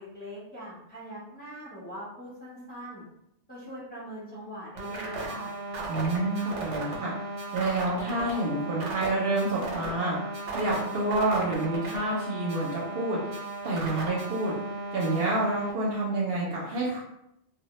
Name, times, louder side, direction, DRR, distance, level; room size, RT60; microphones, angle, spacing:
voice 1, 0.0-3.0 3.5-5.5, equal, 10° left, -7 dB, 0.7 m, -42 dB
sound 1, 4.8-15.7, right 2 dB, 90° right, 0.9 m, -36 dB
voice 2, 5.9-7.1 7.5-14.5 14.9-17.0, right 2 dB, 65° right, -3 dB, 0.7 m, -28 dB
2.1 x 2.0 x 3.0 m, 0.81 s
omnidirectional pair, 1.2 m